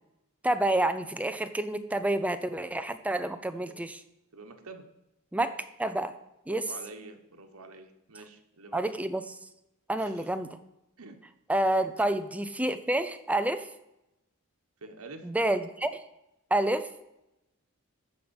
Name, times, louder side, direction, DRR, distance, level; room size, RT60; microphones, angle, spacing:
voice 1, 0.4-4.0 5.3-6.1 6.5-6.6 8.7-9.4 9.9-10.6 11.5-13.7 15.2-16.0 16.5-16.9, right 1 dB, 5° right, 9 dB, 0.5 m, -29 dB
voice 2, 3.4-3.7 4.3-4.9 6.5-8.8 10.0-10.3 11.0-11.2 12.0-12.1 14.8-15.3, right 3 dB, 85° right, 5 dB, 1.3 m, -47 dB
13.5 x 4.8 x 7.1 m, 0.89 s
head